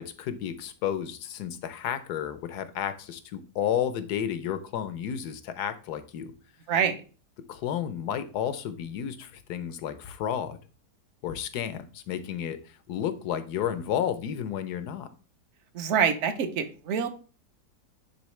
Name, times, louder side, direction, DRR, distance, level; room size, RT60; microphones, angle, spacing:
voice 1, 0.0-6.3 7.5-10.6 11.2-15.1, left 9 dB, 85° left, 11 dB, 1.3 m, -32 dB
voice 2, 6.7-7.0 15.7-17.1, right 7 dB, 55° right, 9 dB, 1.0 m, -26 dB
10.0 x 3.8 x 3.2 m, 0.37 s
omnidirectional pair, 1.7 m